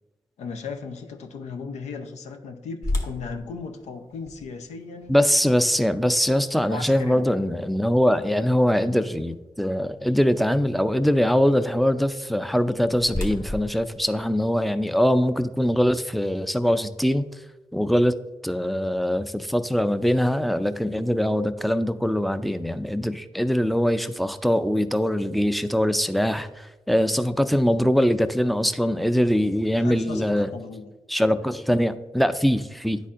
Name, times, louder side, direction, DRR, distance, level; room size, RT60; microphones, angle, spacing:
voice 1, 0.4-5.2 6.7-7.4 29.8-30.9, left 4 dB, 90° left, 6 dB, 0.6 m, -36 dB
sound 1, 2.8-8.8 9.3-9.4 10.0-10.3 12.3-15.0, left 2 dB, 30° left, 1.1 m, -35 dB
voice 2, 5.1-17.3 17.7-18.2 18.4-26.5 26.9-30.5 31.1-33.0, equal, ahead, 12 dB, 0.4 m, -22 dB
10.0 x 4.2 x 2.5 m, 1.1 s
cardioid pair, 55°, 11 cm